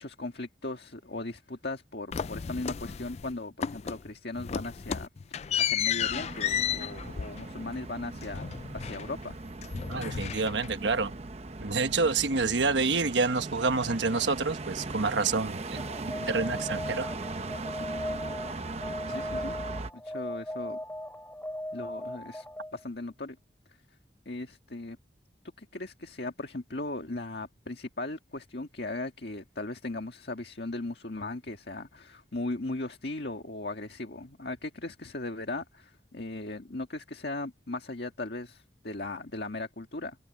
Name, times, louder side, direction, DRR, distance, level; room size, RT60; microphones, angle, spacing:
voice 1, 0.0-9.4 19.1-19.6 19.9-20.8 21.7-22.5 22.7-23.4 24.3-25.0 25.6-40.2, left 2 dB, 60° left, 1.9 m, -38 dB
sound 1, 2.1-3.3 3.6-4.1 4.4-9.3 9.6-10.9, left 8 dB, 35° left, 0.4 m, -33 dB
sound 2, 6.0-19.9, right 2 dB, 35° right, 0.9 m, -39 dB
voice 2, 9.9-11.1 11.6-15.8 16.2-17.1, right 4 dB, 80° right, 1.1 m, -28 dB
Alarm, 15.8-22.8, left 1 dB, 10° left, 3.5 m, -38 dB
head